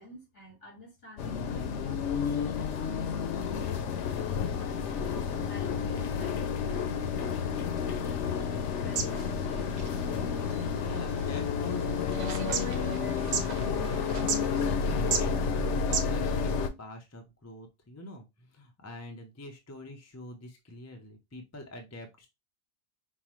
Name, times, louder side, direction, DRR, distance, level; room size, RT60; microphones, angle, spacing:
voice 1, 0.0-3.2 4.5-9.7, left 1 dB, 55° left, 2.3 m, -52 dB
sound 1, 1.2-16.7, left 6 dB, 85° left, 0.9 m, -30 dB
sound 2, 7.3-16.5, right 7 dB, 80° right, 1.0 m, -39 dB
sound 3, 9.1-14.6, right 6 dB, 55° right, 0.5 m, -46 dB
voice 2, 10.8-22.3, left 1 dB, 20° left, 0.5 m, -46 dB
5.4 x 2.1 x 3.0 m
omnidirectional pair, 1.2 m